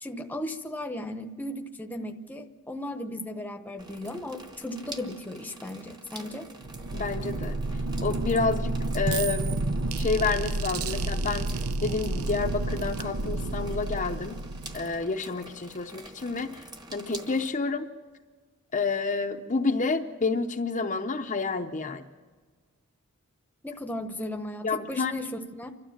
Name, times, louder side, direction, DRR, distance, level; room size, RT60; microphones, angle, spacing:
voice 1, 0.0-6.5 23.6-25.7, left 1 dB, 10° left, 5 dB, 0.9 m, -36 dB
sound 1, 3.8-17.5, right 2 dB, 20° right, 1.2 m, -47 dB
sound 2, 6.6-15.1, right 2 dB, 70° right, 0.7 m, -30 dB
voice 2, 6.9-7.6 8.0-9.7 10.0-11.5 11.8-14.4 14.7-16.6 16.9-17.9 18.7-22.0 24.6-25.1, left 4 dB, 35° left, 5 dB, 0.7 m, -29 dB
29.5 x 12.5 x 7.2 m, 1.5 s
head